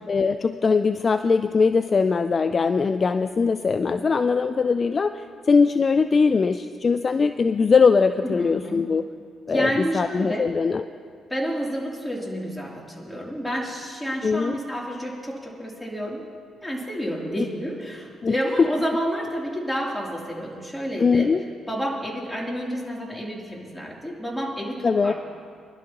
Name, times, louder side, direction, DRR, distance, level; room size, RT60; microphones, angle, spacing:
voice 1, 0.1-9.0 9.5-10.9 14.2-14.6 18.2-18.7 21.0-21.4 24.8-25.1, left 5 dB, 40° left, 10 dB, 0.4 m, -21 dB
voice 2, 8.2-8.8 9.5-10.5 11.3-16.2 16.6-21.3 21.7-25.1, equal, 10° left, -3 dB, 3.1 m, -29 dB
24.0 x 12.0 x 3.0 m, 2.1 s
cardioid pair, 90°, 0 cm